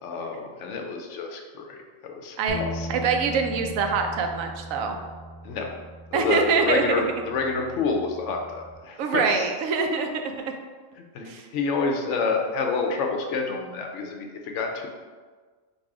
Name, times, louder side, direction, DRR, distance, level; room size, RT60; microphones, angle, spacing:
voice 1, 0.0-2.9 5.4-5.7 6.1-9.5 11.1-14.9, left 4 dB, 70° left, 2 dB, 0.9 m, -28 dB
sound 1, 2.5-8.7, equal, 45° left, 0.5 m, -39 dB
voice 2, 2.9-5.0 6.1-6.8 9.0-10.3 11.3-11.5, right 5 dB, 90° right, 4 dB, 1.0 m, -24 dB
4.0 x 2.6 x 4.7 m, 1.5 s
omnidirectional pair, 1.3 m